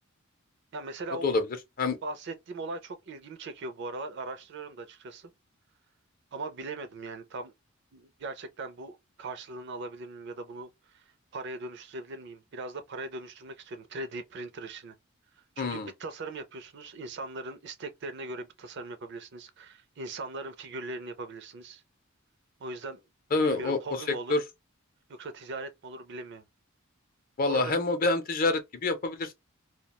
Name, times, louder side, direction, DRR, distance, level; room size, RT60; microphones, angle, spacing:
voice 1, 0.7-1.3 2.0-5.3 6.3-7.5 7.9-11.0 11.3-14.9 15.6-21.8 22.6-23.0 23.4-24.3 25.2-26.4 27.4-27.8, right 2 dB, 55° right, 0.4 m, -39 dB
voice 2, 15.6-15.9 23.3-23.8 24.3-24.4 27.4-29.3, left 3 dB, 40° left, 0.5 m, -26 dB
2.3 x 2.1 x 2.8 m
head